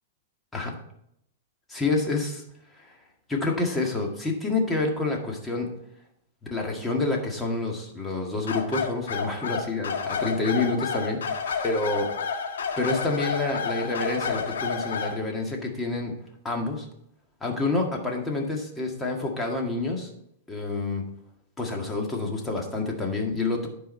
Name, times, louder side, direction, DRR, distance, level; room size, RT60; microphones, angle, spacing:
voice 1, 1.7-2.4 3.3-5.7 6.4-12.1 12.8-16.1 16.4-16.9 17.4-20.1 20.5-21.0 21.6-23.7, left 3 dB, 10° left, 0 dB, 1.8 m, -28 dB
sound 1, 8.5-15.2, left 6 dB, 90° left, 1.5 m, -30 dB
11.5 x 4.7 x 4.4 m, 0.74 s
hypercardioid pair, 140°, 0 cm